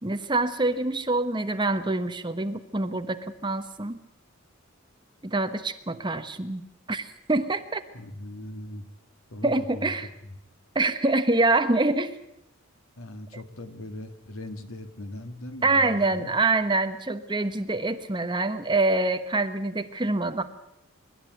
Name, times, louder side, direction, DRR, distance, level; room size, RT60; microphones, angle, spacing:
voice 1, 0.0-4.0 5.2-6.6 6.9-7.8 9.4-10.1 10.7-12.2 15.6-20.4, right 2 dB, 20° right, 9 dB, 1.1 m, -25 dB
voice 2, 7.9-8.9 9.3-9.9 10.2-10.3 13.0-16.3, left 1 dB, 85° left, 8 dB, 2.0 m, -39 dB
24.5 x 12.0 x 9.3 m, 0.82 s
head